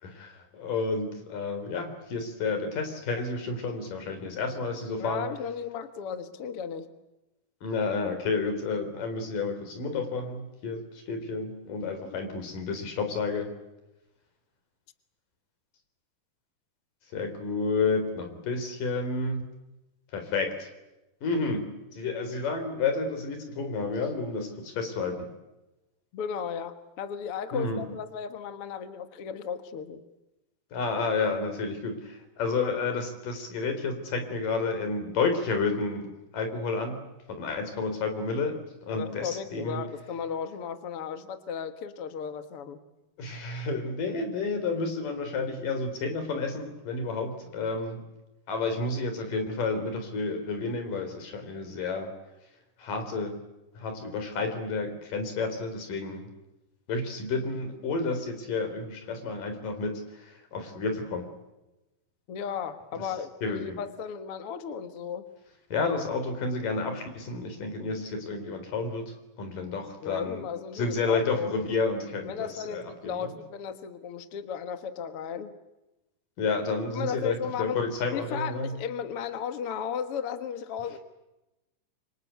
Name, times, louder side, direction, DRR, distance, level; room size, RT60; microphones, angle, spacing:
voice 1, 0.0-5.3 7.6-13.5 17.1-19.4 20.1-20.7 21.2-25.3 27.5-27.8 30.7-36.1 36.3-37.0 37.4-39.8 43.2-48.0 48.5-52.1 52.8-53.4 53.8-56.3 56.9-61.3 63.0-63.1 63.4-63.8 65.7-70.4 70.8-73.3 76.4-78.7, left 4 dB, 80° left, 7 dB, 5.5 m, -31 dB
voice 2, 5.0-6.9 11.8-12.2 26.1-30.0 38.9-42.8 62.3-65.3 70.0-71.5 72.2-75.5 76.9-77.8 78.1-81.0, left 7 dB, 50° left, 9 dB, 2.1 m, -35 dB
27.0 x 25.0 x 8.3 m, 0.99 s
omnidirectional pair, 3.8 m